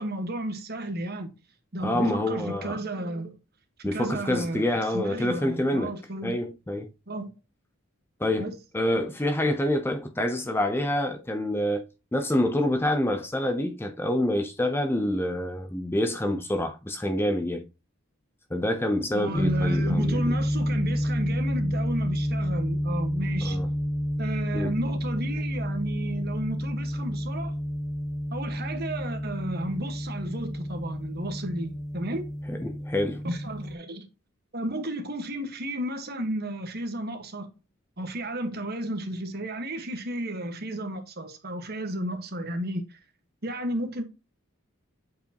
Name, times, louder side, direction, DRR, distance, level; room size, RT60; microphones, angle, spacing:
voice 1, 0.0-1.3 1.7-3.4 3.9-6.4 7.1-7.3 8.4-8.5 19.1-23.6 24.2-27.6 28.3-32.2 33.2-34.1 34.5-37.5 38.0-43.0 43.4-44.0, right 1 dB, 50° right, 1.4 m, -33 dB
voice 2, 1.8-2.8 3.8-5.9 6.2-6.9 8.2-17.6 18.5-20.3 23.4-23.7 24.5-24.7 32.5-33.2, left 1 dB, 10° left, 0.6 m, -27 dB
sound 1, 19.3-33.7, equal, 35° left, 1.3 m, -29 dB
8.2 x 4.7 x 2.9 m
head